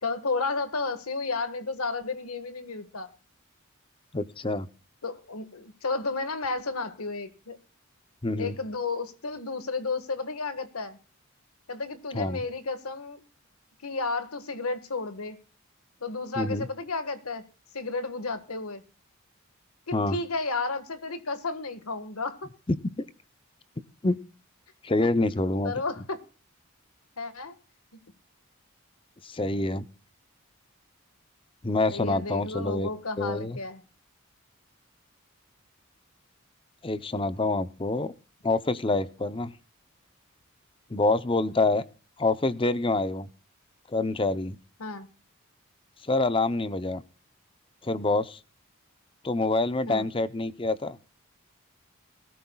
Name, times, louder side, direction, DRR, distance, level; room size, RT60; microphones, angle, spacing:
voice 1, 0.0-3.1 5.0-7.6 8.4-11.0 11.7-13.2 13.8-15.4 16.0-17.4 17.7-18.8 19.9-22.4 25.0-25.1 25.6-26.2 27.2-27.5 31.9-33.8 44.8-45.1 49.9-50.1, left 3 dB, 90° left, 1.5 m, -32 dB
voice 2, 4.1-4.7 8.2-8.5 12.1-12.4 16.4-16.7 19.9-20.2 22.7-23.0 24.0-24.2 24.8-25.7 29.2-29.8 31.6-32.9 33.2-33.6 36.8-38.1 38.4-39.5 40.9-41.8 42.2-43.3 43.9-44.6 46.1-47.0 47.8-48.4 49.2-51.0, left 2 dB, 25° left, 0.6 m, -26 dB
21.0 x 13.5 x 2.3 m
head